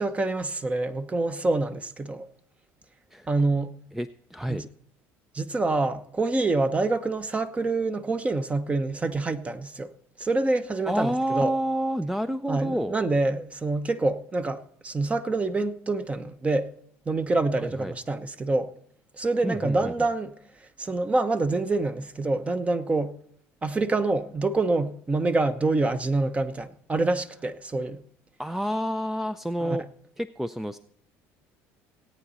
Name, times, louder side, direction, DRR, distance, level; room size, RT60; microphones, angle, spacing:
voice 1, 0.0-2.3 3.3-3.8 4.5-4.7 5.3-9.9 10.2-11.5 12.5-16.7 17.1-18.7 19.2-20.3 20.8-23.1 23.6-28.0 29.6-29.8, right 2 dB, 20° right, 0.9 m, -26 dB
voice 2, 3.9-4.6 10.2-10.3 10.9-13.0 17.6-17.9 19.4-20.1 28.4-29.8 30.2-30.8, equal, 5° right, 0.4 m, -29 dB
17.5 x 9.0 x 4.1 m
supercardioid pair, 95°, 6 cm